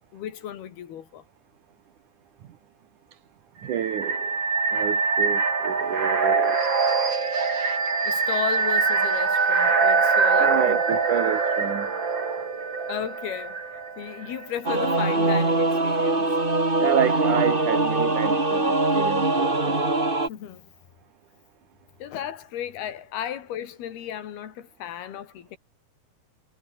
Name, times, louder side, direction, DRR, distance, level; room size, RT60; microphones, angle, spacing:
voice 1, 0.1-1.2 8.0-11.0 12.9-13.6 14.0-16.3 20.3-20.7 22.0-25.6, left 10 dB, 85° left, 4.3 m, -35 dB
voice 2, 3.6-4.4 4.7-6.6 10.4-11.9 16.8-19.8, right 10 dB, 60° right, 2.9 m, -29 dB
sound 1, 3.7-14.4, right 5 dB, 30° right, 3.4 m, -23 dB
Singing / Musical instrument, 14.6-20.3, right 2 dB, 15° right, 2.9 m, -22 dB
omnidirectional pair, 4.4 m